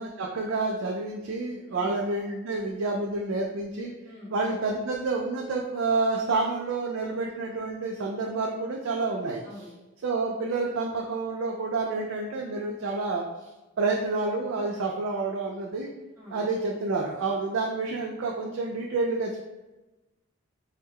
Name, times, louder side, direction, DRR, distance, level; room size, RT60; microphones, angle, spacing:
voice 1, 0.0-3.9 4.3-9.4 10.0-13.5 13.8-15.9 16.3-19.4, right 3 dB, 65° right, 0 dB, 0.4 m, -29 dB
voice 2, 9.4-9.7 16.2-16.4, left 1 dB, 15° right, -8 dB, 1.2 m, -45 dB
3.5 x 2.2 x 3.0 m, 1.1 s
head